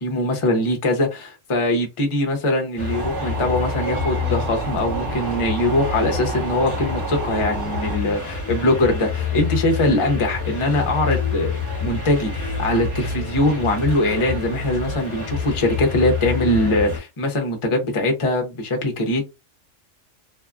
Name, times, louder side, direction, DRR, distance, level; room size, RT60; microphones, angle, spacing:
voice 1, 0.0-11.5 11.8-19.3, left 1 dB, 35° left, 0.6 m, -22 dB
sound 1, 2.8-17.0, left 4 dB, 15° left, 1.2 m, -27 dB
sound 2, 2.9-8.0, right 6 dB, 75° right, 0.9 m, -31 dB
2.7 x 2.3 x 2.4 m
omnidirectional pair, 1.3 m